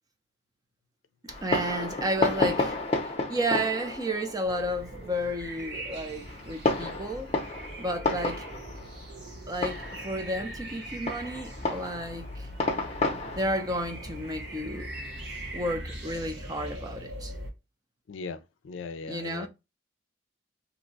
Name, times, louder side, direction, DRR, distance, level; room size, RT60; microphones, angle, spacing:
voice 1, 1.2-7.3 7.8-8.4 9.5-12.5 13.4-14.9 15.5-17.3 19.1-19.5, right 1 dB, 20° right, 0.5 m, -32 dB
Fireworks, 1.3-15.4, left 2 dB, 30° left, 0.7 m, -32 dB
sound 1, 4.4-17.5, right 1 dB, 60° right, 1.1 m, -41 dB
voice 2, 18.1-19.5, left 4 dB, 80° left, 0.4 m, -38 dB
2.8 x 2.2 x 3.9 m
head